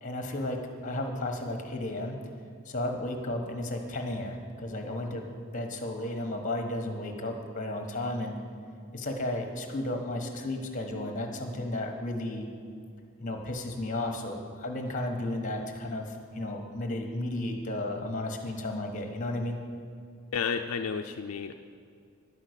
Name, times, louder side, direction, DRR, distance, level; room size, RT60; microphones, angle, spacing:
voice 1, 0.0-2.2 2.6-8.4 8.9-12.5 13.2-19.6, left 1 dB, 35° left, 4 dB, 1.2 m, -33 dB
voice 2, 20.3-21.5, left 6 dB, 75° left, 5 dB, 0.4 m, -31 dB
11.0 x 5.7 x 8.1 m, 2.4 s
head